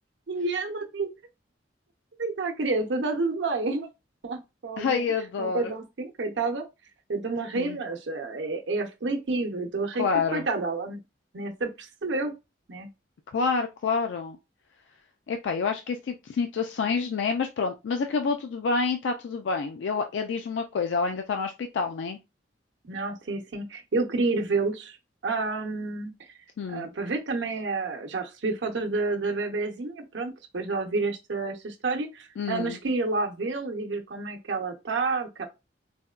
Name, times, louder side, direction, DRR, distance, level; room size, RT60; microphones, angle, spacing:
voice 1, 0.3-1.1 2.2-3.9 4.2-5.0 5.4-6.7 7.1-10.1 10.3-11.0 11.3-12.3 12.7-12.9 22.9-25.0 25.2-26.1 26.7-35.5, right 3 dB, 80° right, 0.7 m, -29 dB
voice 2, 4.8-5.7 7.6-7.8 10.0-10.5 13.3-14.4 15.3-22.2 26.6-26.9 32.4-32.8, left 5 dB, 80° left, 0.4 m, -28 dB
4.1 x 2.1 x 2.3 m
head